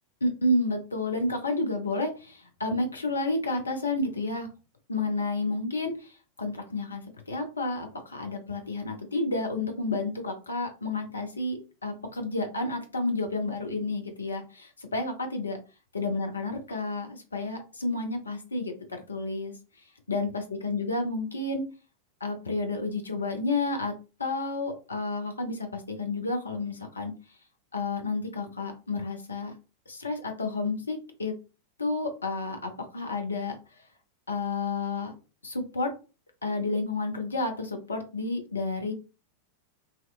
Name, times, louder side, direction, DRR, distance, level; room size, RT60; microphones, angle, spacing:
voice 1, 0.2-4.5 4.9-15.6 15.9-19.5 20.1-21.6 22.2-23.9 24.2-27.1 27.7-29.5 29.9-31.3 31.8-33.6 34.3-35.1 35.4-35.9 36.4-38.9, left 2 dB, 75° left, 4 dB, 0.6 m, -30 dB
2.8 x 2.1 x 2.3 m, 0.32 s
figure-of-eight pair, 90°, 0 cm